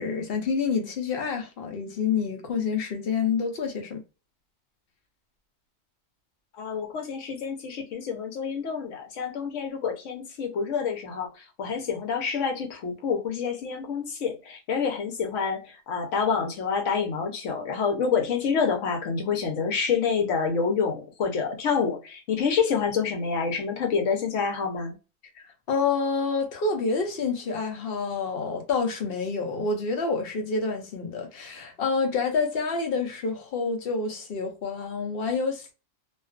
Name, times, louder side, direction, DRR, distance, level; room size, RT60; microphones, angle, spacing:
voice 1, 0.0-4.0 25.7-35.7, left 4 dB, 55° left, 0.8 m, -28 dB
voice 2, 6.6-11.3 11.6-24.9, left 6 dB, 75° left, 1.0 m, -27 dB
2.5 x 2.3 x 2.3 m
omnidirectional pair, 1.3 m